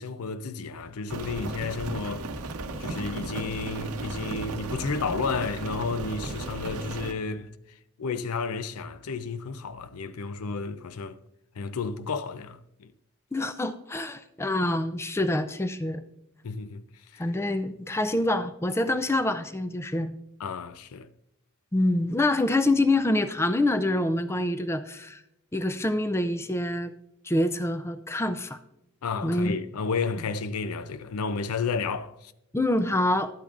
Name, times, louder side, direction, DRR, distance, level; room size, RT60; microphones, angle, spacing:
voice 1, 0.0-2.3 2.8-7.5 8.0-11.2 11.6-12.9 16.4-16.8 17.1-17.2 20.4-21.1 29.0-32.3, left 4 dB, 85° left, 0.5 m, -32 dB
Rain, 1.1-7.1, right 2 dB, 85° right, 0.7 m, -35 dB
voice 2, 13.3-16.0 17.2-20.1 21.7-25.2 25.5-26.9 27.2-28.6 29.2-29.7 32.5-33.3, left 1 dB, 10° left, 0.4 m, -26 dB
12.0 x 8.5 x 2.5 m
head